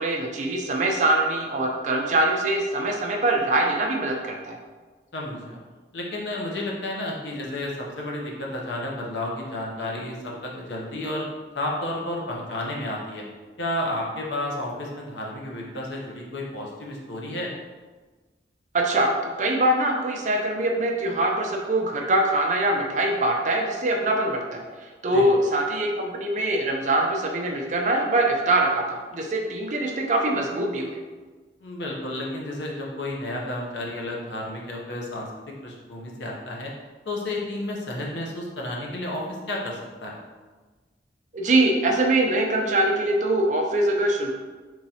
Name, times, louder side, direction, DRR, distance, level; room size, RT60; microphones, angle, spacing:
voice 1, 0.0-4.6 18.7-24.6 25.0-31.0 41.3-44.3, right 1 dB, 45° right, 1 dB, 0.5 m, -23 dB
voice 2, 5.1-5.6 5.9-11.3 11.5-13.2 13.6-17.5 25.1-25.2 31.6-36.7 37.1-40.2, left 1 dB, 85° left, -2 dB, 0.7 m, -31 dB
3.8 x 3.0 x 2.8 m, 1.3 s
head